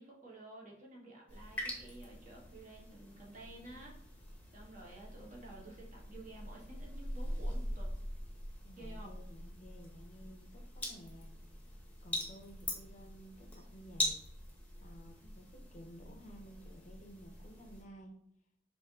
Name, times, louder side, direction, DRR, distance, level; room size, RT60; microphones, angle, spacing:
voice 1, 0.0-4.2 4.5-8.0 8.8-9.2, right 2 dB, 45° right, -2 dB, 1.1 m, -52 dB
sound 1, 1.3-17.8, left 1 dB, 10° left, 0.8 m, -43 dB
voice 2, 8.6-11.3 12.0-14.2 14.8-18.1, equal, 40° left, 4 dB, 0.6 m, -54 dB
4.3 x 2.7 x 3.6 m, 0.73 s
head